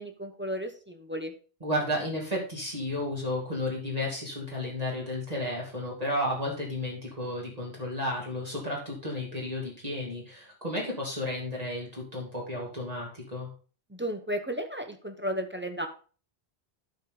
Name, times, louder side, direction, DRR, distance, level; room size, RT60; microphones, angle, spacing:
voice 1, 0.0-1.3 13.9-15.9, equal, 10° right, 5 dB, 0.9 m, -34 dB
voice 2, 1.6-13.5, left 1 dB, 35° right, -4 dB, 2.4 m, -32 dB
11.5 x 5.0 x 3.8 m, 0.38 s
omnidirectional pair, 1.1 m